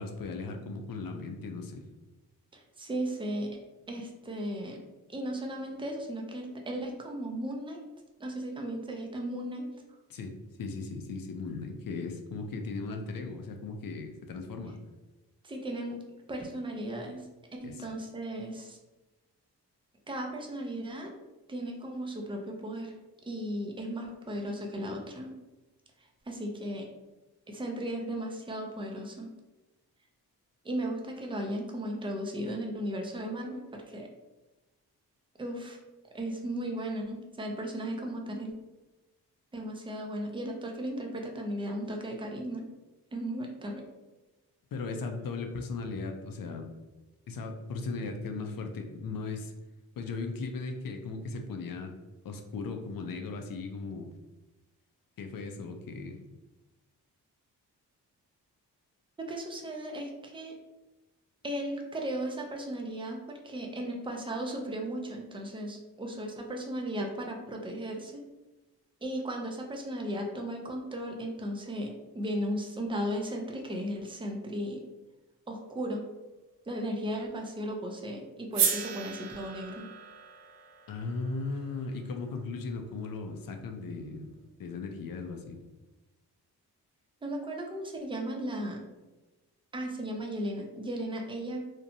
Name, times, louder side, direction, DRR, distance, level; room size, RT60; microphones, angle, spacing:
voice 1, 0.0-1.9 10.1-14.8 17.6-17.9 44.7-46.7 47.3-49.5 50.0-51.9 52.2-54.1 55.2-56.2 80.9-84.3 84.6-85.6, left 3 dB, 55° left, 5 dB, 0.5 m, -37 dB
voice 2, 2.5-3.5 3.9-4.8 5.1-7.8 8.2-9.7 15.4-16.0 16.3-18.8 20.1-21.1 21.5-22.9 23.3-25.3 26.0-26.9 27.5-29.3 30.6-34.1 35.4-35.8 36.1-38.5 39.5-42.7 43.1-43.8 59.2-60.6 61.4-68.2 69.0-74.8 75.5-76.0 76.7-79.9 87.2-88.8 89.7-91.6, right 1 dB, 10° right, 1 dB, 0.6 m, -36 dB
sound 1, 78.5-82.7, right 7 dB, 70° right, 0.6 m, -35 dB
2.6 x 2.1 x 2.7 m, 1.1 s
supercardioid pair, 40°, 42 cm